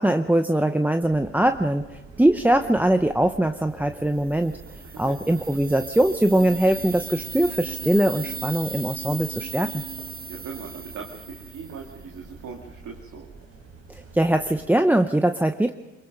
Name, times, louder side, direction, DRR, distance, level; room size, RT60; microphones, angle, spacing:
voice 1, 0.0-4.6 5.0-9.8 13.9-15.7, right 1 dB, 5° right, 7 dB, 0.7 m, -22 dB
sound 1, 1.0-14.7, right 3 dB, 55° right, 4.3 m, -46 dB
sound 2, 4.2-12.1, right 5 dB, 30° right, 1.5 m, -37 dB
voice 2, 10.3-13.3, right 5 dB, 75° right, 1 dB, 2.3 m, -40 dB
24.0 x 23.0 x 5.3 m, 1.1 s
cardioid pair, 90°, 30 cm